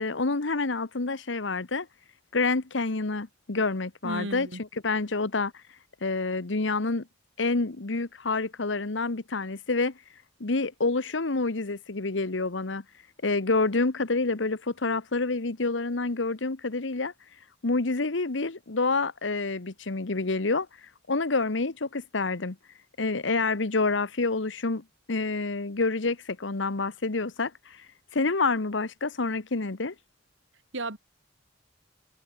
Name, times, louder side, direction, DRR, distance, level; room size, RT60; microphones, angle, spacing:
voice 1, 0.0-1.9 2.3-4.5 4.8-5.5 6.0-7.1 7.4-9.9 10.4-12.8 13.2-17.1 17.6-20.7 21.1-22.6 23.0-27.8 28.1-29.9, left 3 dB, 80° left, 1.2 m, -28 dB
voice 2, 4.0-4.6 30.7-31.0, right 2 dB, 85° right, 4.2 m, -33 dB
head